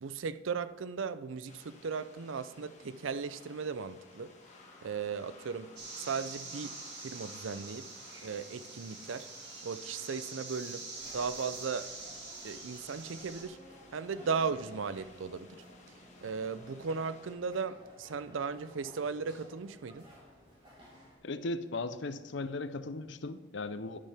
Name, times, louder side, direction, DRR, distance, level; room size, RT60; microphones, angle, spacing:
voice 1, 0.0-4.3 4.8-7.9 8.2-9.3 9.6-10.8 11.1-11.9 12.4-13.6 13.9-15.6 16.2-20.1, right 5 dB, 85° right, 14 dB, 0.5 m, -37 dB
sound 1, 1.5-17.4, left 2 dB, 35° left, 1.5 m, -56 dB
sound 2, 5.8-13.4, right 3 dB, 55° right, 2.4 m, -45 dB
sound 3, 10.9-21.2, equal, 25° right, 3.1 m, -56 dB
voice 2, 21.2-24.0, left 2 dB, 65° left, 12 dB, 0.6 m, -37 dB
11.5 x 11.0 x 3.5 m, 1.2 s
head